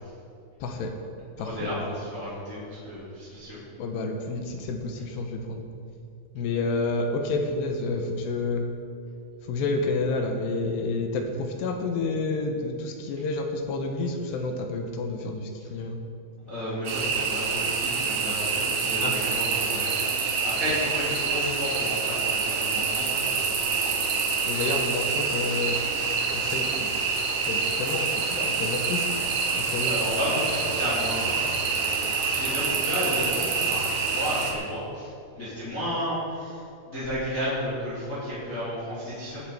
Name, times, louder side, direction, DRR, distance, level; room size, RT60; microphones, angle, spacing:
voice 1, 0.6-0.9 1.4-1.7 3.8-5.6 6.3-8.7 9.4-16.0 19.0-19.1 24.1-25.8 26.3-27.0 27.3-29.1 29.6-30.0, left 3 dB, 75° left, 4 dB, 2.9 m, -29 dB
voice 2, 1.4-3.6 16.4-24.0 29.8-31.4 32.3-39.4, equal, 20° left, -10 dB, 3.2 m, -32 dB
sound 1, 16.8-34.5, right 5 dB, 90° right, 1.6 m, -27 dB
19.0 x 7.4 x 4.9 m, 2.4 s
omnidirectional pair, 5.4 m